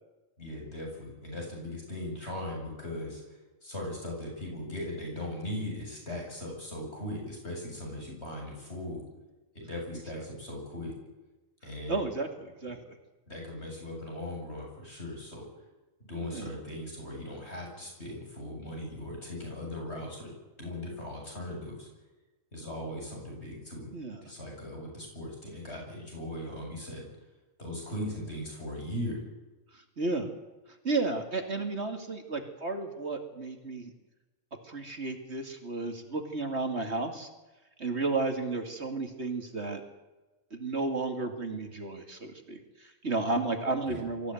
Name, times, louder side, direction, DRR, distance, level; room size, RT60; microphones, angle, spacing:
voice 1, 0.4-3.2 3.6-9.0 9.5-10.9 11.6-12.0 13.3-15.4 16.1-20.3 20.6-21.9 22.5-23.9 24.2-27.1 27.6-29.2 43.9-44.0, left 1 dB, 50° left, 0 dB, 8.1 m, -38 dB
voice 2, 11.9-12.9 16.2-16.6 23.9-24.2 29.7-30.3 30.8-33.9 34.6-37.3 37.8-39.8 40.5-44.3, right 3 dB, 50° right, 5 dB, 2.7 m, -33 dB
24.0 x 15.5 x 9.2 m, 1.1 s
omnidirectional pair, 1.4 m